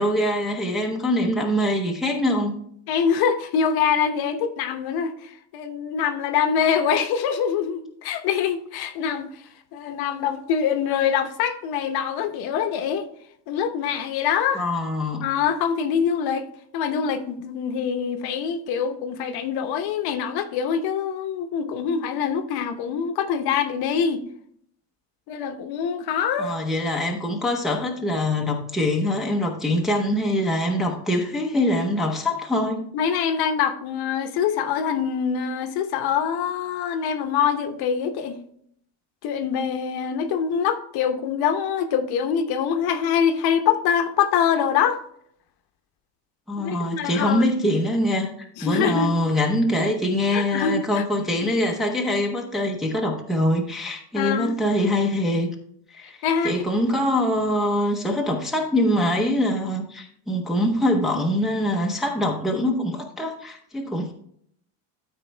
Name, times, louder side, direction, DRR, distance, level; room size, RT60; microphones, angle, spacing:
voice 1, 0.0-2.6 14.5-15.3 26.4-32.9 46.5-55.5 55.9-56.2 56.4-64.1, left 1 dB, ahead, 0 dB, 0.7 m, -24 dB
voice 2, 2.9-9.4 9.7-13.1 13.5-14.7 15.2-16.5 16.7-24.2 25.3-26.5 32.9-38.4 39.2-45.0 46.6-47.5 48.6-49.1 50.3-51.0 54.1-54.6 56.2-56.5, left 7 dB, 55° left, 8 dB, 0.9 m, -24 dB
13.0 x 4.4 x 3.3 m, 0.67 s
cardioid pair, 165°, 46 cm